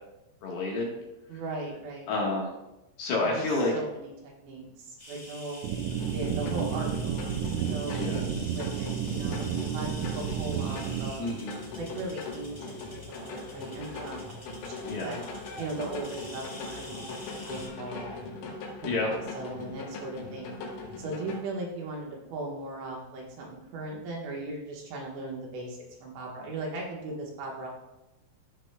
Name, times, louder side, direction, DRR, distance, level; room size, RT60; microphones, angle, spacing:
voice 1, 0.4-0.9 2.1-2.5 3.0-3.7 7.9-8.2 11.2-11.6 14.9-15.2 18.8-19.1, left 2 dB, 65° left, -3 dB, 3.0 m, -29 dB
voice 2, 1.3-2.1 3.2-5.7 6.1-7.4 7.7-8.1 8.5-11.3 11.7-15.2 15.6-18.3 19.0-20.5 21.0-27.7, right 2 dB, 70° right, -2 dB, 3.3 m, -38 dB
sound 1, 5.0-17.7, left 1 dB, 25° left, 1.1 m, -47 dB
sound 2, 5.6-11.1, right 9 dB, 85° right, 3.2 m, -31 dB
sound 3, 5.9-21.4, left 3 dB, 85° left, 3.8 m, -41 dB
15.0 x 6.0 x 2.2 m, 0.97 s
omnidirectional pair, 5.6 m